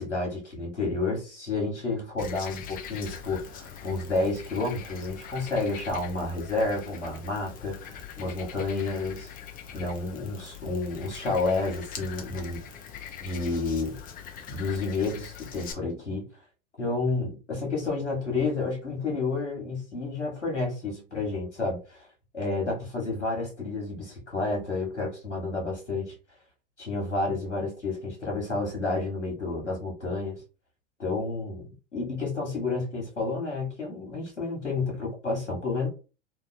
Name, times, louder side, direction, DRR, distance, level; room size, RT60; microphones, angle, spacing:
voice 1, 0.0-9.3 9.7-12.6 13.2-14.0 14.5-16.2 16.8-22.1 22.3-26.1 26.8-30.4 31.0-35.9, left 3 dB, 90° left, 0 dB, 1.1 m, -30 dB
Frog, 2.2-15.7, left 8 dB, 25° left, 0.6 m, -43 dB
2.8 x 2.2 x 2.5 m, 0.33 s
figure-of-eight pair, 95°, 35 cm